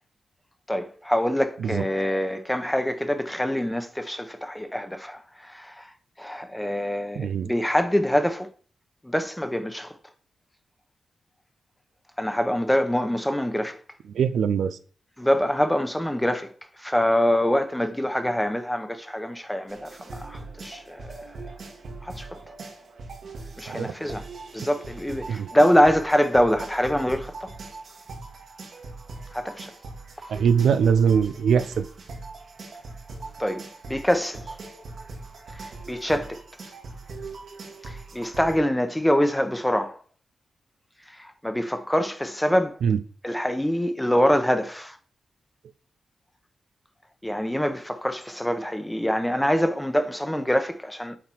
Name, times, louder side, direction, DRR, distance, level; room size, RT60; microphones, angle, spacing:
voice 1, 0.7-5.9 6.2-8.5 9.0-10.0 12.2-13.8 15.2-16.5 16.8-21.2 22.0-22.5 23.6-24.2 24.5-27.5 29.3-29.7 33.4-34.6 35.5-36.4 37.8-40.0 41.1-42.8 43.2-45.0 47.2-51.2, equal, 5° left, 0.9 m, -25 dB
voice 2, 7.2-7.5 14.1-14.8 23.7-23.9 25.3-25.5 30.3-31.8 42.8-43.0, right 7 dB, 90° right, 0.5 m, -22 dB
sound 1, 19.7-38.6, right 3 dB, 70° right, 2.0 m, -41 dB
8.7 x 3.9 x 4.6 m
cardioid pair, 80°, 0 cm